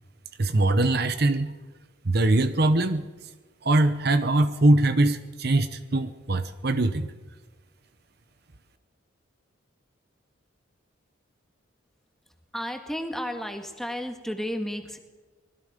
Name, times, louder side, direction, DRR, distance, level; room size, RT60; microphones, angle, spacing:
voice 1, 0.4-1.5 2.0-3.0 3.6-7.1, right 2 dB, 50° right, 10 dB, 0.9 m, -22 dB
voice 2, 12.5-15.0, equal, ahead, 5 dB, 1.7 m, -32 dB
25.0 x 20.5 x 5.2 m, 1.3 s
head